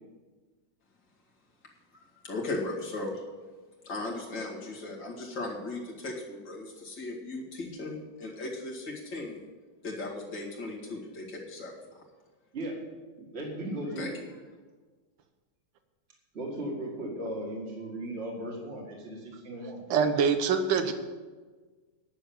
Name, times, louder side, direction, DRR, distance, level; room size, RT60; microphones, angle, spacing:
voice 1, 2.2-3.2 3.8-9.4 9.8-11.7 14.0-14.1, left 2 dB, 60° left, -2 dB, 2.8 m, -37 dB
voice 2, 12.5-12.8 13.2-14.1 16.3-19.8, right 1 dB, 30° right, -1 dB, 2.2 m, -36 dB
voice 3, 19.9-20.9, right 6 dB, 70° right, 8 dB, 1.7 m, -24 dB
10.5 x 6.9 x 8.7 m, 1.4 s
omnidirectional pair, 2.2 m